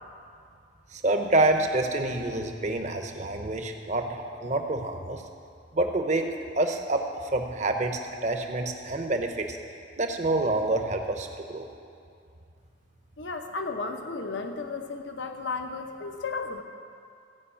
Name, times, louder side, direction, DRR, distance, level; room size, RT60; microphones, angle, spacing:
voice 1, 0.9-5.2 5.7-9.6 10.0-11.7, right 2 dB, 40° right, 4 dB, 0.9 m, -27 dB
voice 2, 13.2-16.6, left 4 dB, 70° left, 5 dB, 0.9 m, -34 dB
15.5 x 5.4 x 8.4 m, 2.4 s
head